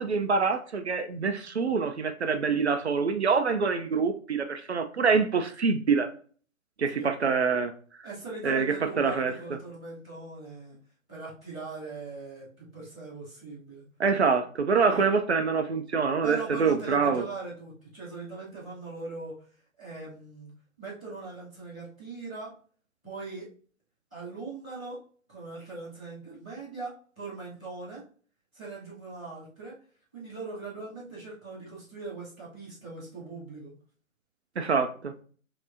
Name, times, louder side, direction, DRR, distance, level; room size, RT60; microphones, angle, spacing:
voice 1, 0.0-6.1 6.8-7.7 8.4-9.3 14.0-17.2 34.6-35.1, right 5 dB, 55° right, 7 dB, 0.5 m, -25 dB
voice 2, 8.0-10.8 11.1-13.8 14.9-15.1 16.2-19.3 19.8-20.5 20.8-22.5 23.0-23.5 24.1-25.0 25.3-28.0 28.5-29.7 30.1-33.7, right 3 dB, 5° left, -18 dB, 0.5 m, -40 dB
5.2 x 2.9 x 2.6 m, 0.43 s
figure-of-eight pair, 155°, 41 cm